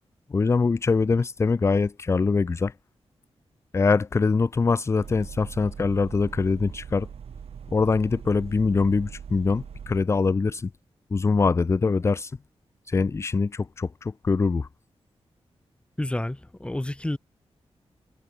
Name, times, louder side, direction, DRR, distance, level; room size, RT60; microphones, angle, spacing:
voice 1, 0.3-2.7 3.7-7.1 7.7-10.7 11.1-12.4 12.8-14.7, left 4 dB, 25° left, 0.4 m, -23 dB
sound 1, 5.0-10.0, right 7 dB, 70° right, 1.0 m, -41 dB
voice 2, 16.0-17.2, left 1 dB, 10° left, 1.7 m, -29 dB
wide cardioid pair, 145°, 11 cm